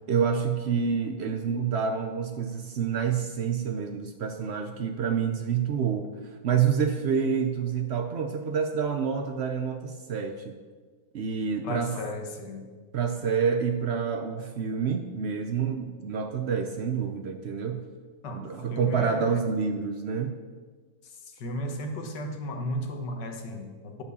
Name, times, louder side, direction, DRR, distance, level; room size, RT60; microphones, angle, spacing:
voice 1, 0.1-6.1 6.4-10.6 11.1-12.0 12.9-17.8 18.3-20.4, right 6 dB, 85° right, 5 dB, 0.5 m, -28 dB
voice 2, 11.6-12.7 18.2-19.3 21.0-24.0, left 1 dB, 70° left, 4 dB, 1.8 m, -35 dB
10.5 x 5.6 x 6.9 m, 1.5 s
omnidirectional pair, 2.0 m